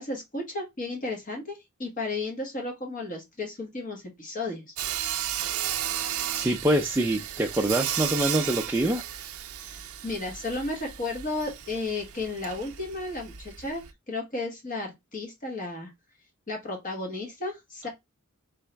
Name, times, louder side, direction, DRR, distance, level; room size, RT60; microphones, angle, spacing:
voice 1, 0.0-4.7 9.6-15.9 16.5-17.9, left 2 dB, 40° left, 1.2 m, -34 dB
Sawing, 4.8-13.9, right 11 dB, 85° right, 0.5 m, -34 dB
voice 2, 6.3-9.0, right 1 dB, 10° right, 0.4 m, -25 dB
4.0 x 3.6 x 3.3 m
head